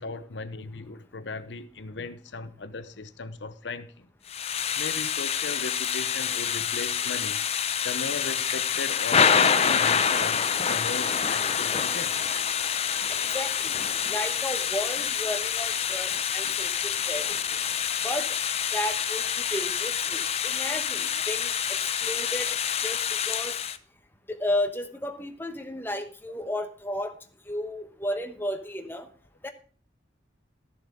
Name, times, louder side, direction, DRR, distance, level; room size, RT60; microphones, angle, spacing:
voice 1, 0.0-4.1 4.8-7.5 7.8-12.1 17.0-17.1 20.5-20.6 20.9-21.1, left 3 dB, 80° left, 0.8 m, -37 dB
Thunder / Rain, 4.3-23.8, left 7 dB, 35° left, 0.6 m, -27 dB
voice 2, 13.1-13.7 14.1-17.4 18.0-18.3 18.7-22.5 22.8-23.0 23.3-23.5 24.3-27.1 27.5-29.1 29.4-29.5, left 1 dB, 10° left, 1.1 m, -33 dB
13.0 x 7.2 x 5.0 m
head